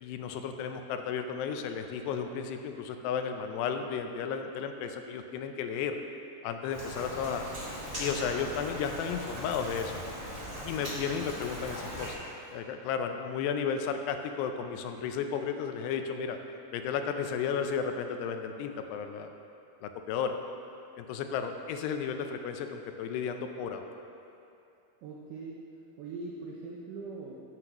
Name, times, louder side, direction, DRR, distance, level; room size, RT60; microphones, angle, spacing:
voice 1, 0.0-5.9 6.4-7.4 8.0-10.0 10.7-12.2 12.5-16.4 16.7-19.3 19.8-20.4 21.0-23.9, left 7 dB, 85° left, 6 dB, 2.7 m, -33 dB
Rain, 6.7-12.1, equal, 25° right, 1.1 m, -39 dB
Fire, 7.4-12.5, left 1 dB, 65° left, 3.8 m, -51 dB
voice 2, 25.0-25.6 26.0-27.4, right 3 dB, 85° right, -3 dB, 1.9 m, -41 dB
13.5 x 7.8 x 3.0 m, 2.7 s
omnidirectional pair, 4.7 m